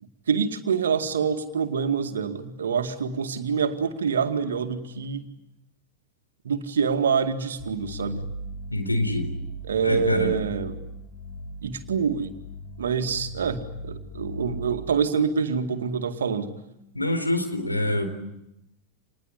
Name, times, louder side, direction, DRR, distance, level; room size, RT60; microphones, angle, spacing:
voice 1, 0.0-5.3 6.4-8.2 9.6-10.8 11.6-12.3 12.8-16.5, right 6 dB, 65° right, 8 dB, 2.2 m, -26 dB
sound 1, 7.6-14.8, equal, 25° left, 6.4 m, -37 dB
voice 2, 8.7-9.3 9.8-10.3 16.9-18.0, left 1 dB, 85° left, 7 dB, 4.1 m, -25 dB
28.0 x 20.5 x 9.8 m, 0.87 s
figure-of-eight pair, 90°, 0 cm